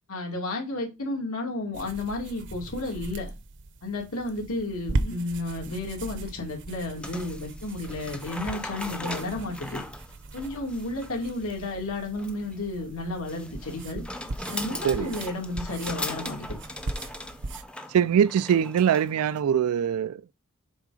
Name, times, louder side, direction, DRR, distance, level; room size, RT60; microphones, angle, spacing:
voice 1, 0.1-3.3 3.8-9.8 10.3-14.0 14.5-16.4, left 2 dB, 75° left, 2.5 m, -32 dB
sound 1, 1.7-17.7, right 2 dB, 55° right, 0.7 m, -38 dB
sound 2, 7.0-19.4, left 1 dB, 5° left, 0.6 m, -39 dB
voice 2, 17.9-20.3, right 8 dB, 90° right, 0.3 m, -23 dB
7.2 x 3.7 x 4.9 m
head